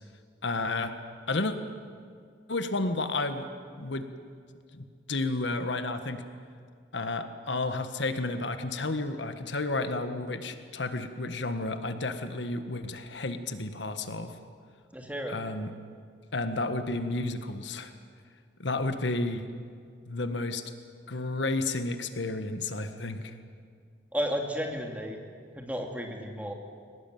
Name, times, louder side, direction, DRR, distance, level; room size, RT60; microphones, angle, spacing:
voice 1, 0.4-0.9 1.3-1.5 2.5-3.5 3.8-4.0 4.7-6.2 6.9-14.3 15.3-15.7 16.3-17.9 18.6-19.5 20.0-20.6 21.1-23.4, left 2 dB, 80° left, 9 dB, 1.5 m, -31 dB
voice 2, 14.9-15.4 24.1-25.2 25.5-26.5, equal, 10° right, 2 dB, 2.4 m, -33 dB
22.0 x 19.0 x 9.3 m, 2.2 s
head